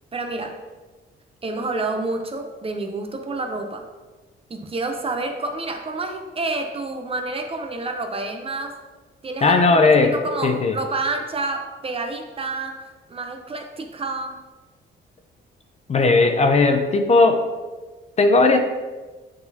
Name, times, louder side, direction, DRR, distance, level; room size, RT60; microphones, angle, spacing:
voice 1, 0.1-0.6 1.4-3.9 4.5-8.8 9.2-14.4, right 2 dB, 30° right, 4 dB, 0.6 m, -29 dB
voice 2, 9.4-10.2 10.4-10.8 15.9-17.4 18.2-18.6, left 3 dB, 30° left, 5 dB, 0.5 m, -16 dB
9.3 x 3.8 x 2.7 m, 1.3 s
cardioid pair, 130°, 21 cm